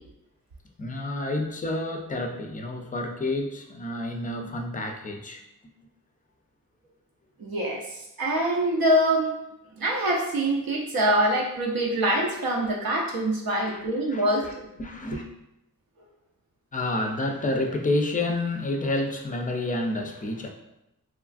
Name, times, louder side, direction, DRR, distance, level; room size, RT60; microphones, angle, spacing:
voice 1, 0.8-5.4 13.6-13.8 14.1-14.5 14.8-15.2 16.7-20.5, left 2 dB, 25° left, 4 dB, 0.3 m, -29 dB
voice 2, 7.4-9.3 9.8-14.5, right 1 dB, 80° right, -2 dB, 0.6 m, -24 dB
3.0 x 2.4 x 2.4 m, 0.88 s
wide cardioid pair, 95°, 35 cm